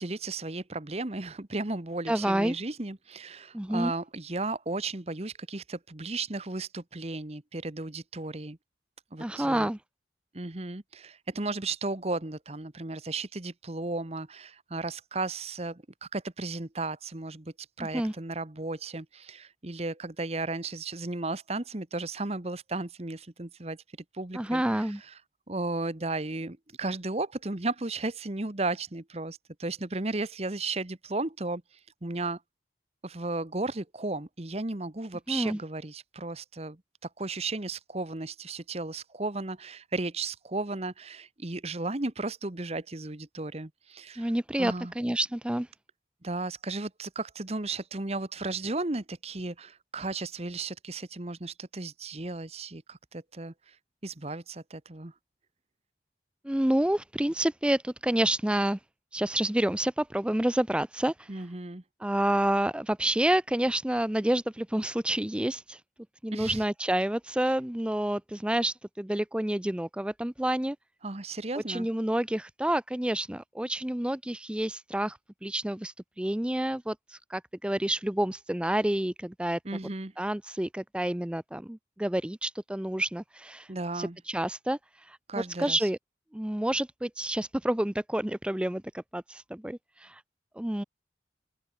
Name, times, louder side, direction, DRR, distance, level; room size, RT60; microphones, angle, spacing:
voice 1, 0.0-8.6 9.1-9.7 10.3-23.8 24.1-25.1 25.5-31.6 32.0-32.4 33.0-36.8 37.2-44.3 44.6-44.9 46.2-53.7 54.0-55.1 61.3-61.8 66.3-66.6 71.0-71.9 79.6-80.1 83.7-84.2 85.3-85.8, right 2 dB, 35° right, 1.2 m, -34 dB
voice 2, 2.1-2.6 3.5-3.9 9.2-9.8 17.9-18.1 24.3-25.0 35.3-35.6 44.1-45.7 56.4-58.8 59.1-61.3 62.0-65.8 66.2-70.8 71.7-79.6 80.2-85.2 85.6-86.0 86.3-90.2 90.6-90.8, right 1 dB, 5° right, 0.4 m, -29 dB
open air
head